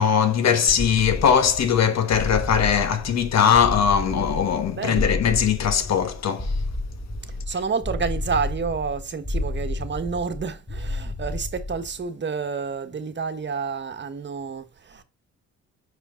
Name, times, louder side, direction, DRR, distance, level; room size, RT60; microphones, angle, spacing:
voice 1, 0.0-6.5, left 7 dB, 60° left, 1.5 m, -20 dB
sound 1, 0.7-12.0, left 2 dB, 10° left, 1.8 m, -31 dB
voice 2, 4.7-5.2 7.5-15.0, right 5 dB, 35° right, 1.4 m, -29 dB
7.0 x 5.1 x 3.9 m
cardioid pair, 90°, 30 cm